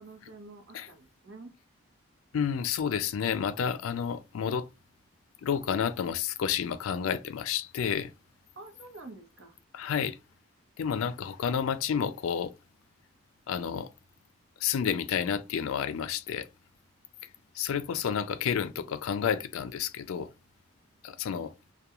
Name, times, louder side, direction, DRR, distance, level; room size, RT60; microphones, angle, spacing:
voice 1, 0.0-1.5 8.6-9.6, right 2 dB, 65° right, 0.8 m, -48 dB
voice 2, 2.3-4.7 5.4-8.1 9.7-10.2 10.8-12.5 13.5-13.9 14.6-16.5 17.5-20.3 21.0-21.5, left 7 dB, 85° left, 0.4 m, -30 dB
2.3 x 2.2 x 2.9 m
head